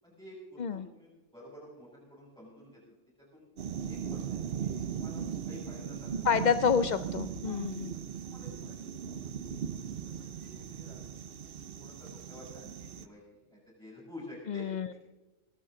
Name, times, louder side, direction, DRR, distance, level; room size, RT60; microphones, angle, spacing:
voice 1, 0.0-2.8 3.3-3.4 3.8-6.3 7.4-7.7 8.1-9.2 9.7-11.0 11.4-15.0, left 1 dB, 5° left, -8 dB, 7.1 m, -51 dB
sound 1, 3.6-13.1, right 8 dB, 50° right, 0.9 m, -38 dB
voice 2, 6.2-7.9 14.5-14.9, left 6 dB, 60° left, 12 dB, 0.5 m, -28 dB
22.5 x 12.0 x 3.8 m, 1.1 s
omnidirectional pair, 1.3 m